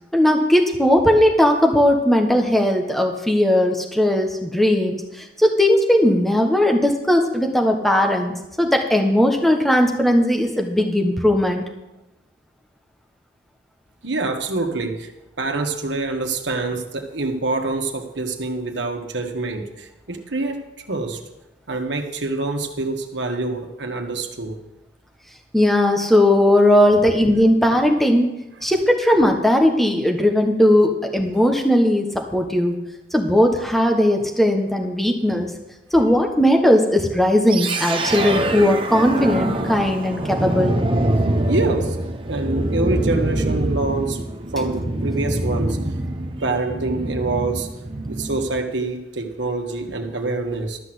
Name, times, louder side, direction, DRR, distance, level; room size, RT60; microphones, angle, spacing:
voice 1, 0.1-11.6 25.5-28.3 28.6-32.8 33.1-35.5 35.9-40.8, left 1 dB, ahead, 2 dB, 1.2 m, -18 dB
voice 2, 14.0-15.1 15.4-21.2 21.7-24.6 41.5-42.0 42.3-44.2 44.5-45.8 46.4-47.7 48.0-50.8, right 3 dB, 80° right, 4 dB, 1.5 m, -26 dB
sound 1, 37.5-48.6, right 1 dB, 30° right, 0.8 m, -24 dB
13.0 x 6.2 x 7.8 m, 0.94 s
head